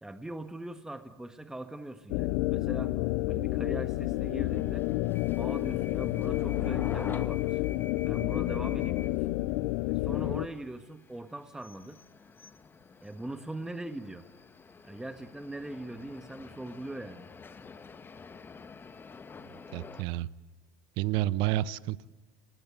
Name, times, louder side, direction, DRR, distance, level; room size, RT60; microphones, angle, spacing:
voice 1, 0.0-2.9 3.3-4.8 5.4-7.6 8.0-9.4 9.9-12.0 13.0-14.2 14.8-17.3, right 1 dB, 5° right, 9 dB, 1.5 m, -41 dB
sound 1, 2.1-10.5, left 18 dB, 55° left, 0.8 m, -30 dB
sound 2, 3.7-20.0, left 5 dB, 20° left, 1.6 m, -48 dB
voice 2, 19.4-20.3 21.0-22.1, right 15 dB, 55° right, 19 dB, 0.9 m, -30 dB
28.5 x 20.5 x 9.2 m, 1.3 s
figure-of-eight pair, 75°, 10 cm